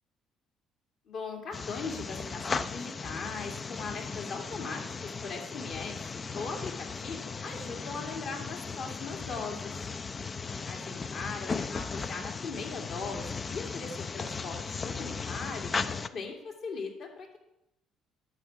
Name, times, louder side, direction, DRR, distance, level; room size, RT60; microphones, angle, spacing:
voice 1, 1.1-9.7 10.7-17.4, left 4 dB, 65° left, 0 dB, 2.4 m, -39 dB
sound 1, 1.5-16.1, left 5 dB, 40° left, 0.5 m, -37 dB
10.5 x 7.2 x 4.7 m, 0.84 s
hypercardioid pair, 55°, 0 cm